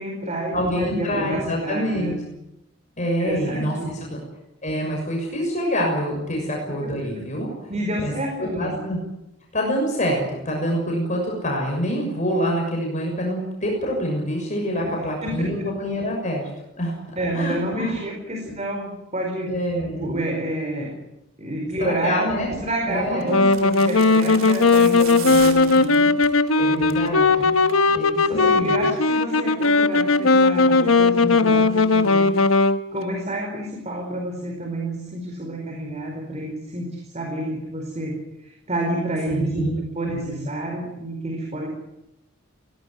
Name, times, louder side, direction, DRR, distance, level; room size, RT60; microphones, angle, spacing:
voice 1, 0.0-2.2 3.2-4.1 6.3-6.4 6.8-7.2 7.7-8.8 14.7-15.5 17.2-19.5 19.9-21.0 21.4-26.1 26.7-27.5 28.2-41.7, right 1 dB, 35° right, 2 dB, 4.7 m, -29 dB
voice 2, 0.5-2.1 3.0-3.8 4.1-4.2 4.6-7.7 8.0-8.1 8.4-9.0 9.5-16.5 16.8-17.0 17.3-18.0 19.5-20.1 21.8-22.5 22.9-23.7 26.6-27.6 27.9-28.8 39.3-39.8 40.1-40.5, equal, 35° left, -1 dB, 6.6 m, -26 dB
sound 1, 22.4-22.7 23.5-26.4 26.8-27.1 27.4-27.5, right 7 dB, 75° right, 4.0 m, -36 dB
Wind instrument woodwind instrument, 23.3-32.8, left 3 dB, 85° left, 1.3 m, -18 dB
23.0 x 18.0 x 9.7 m, 0.89 s
head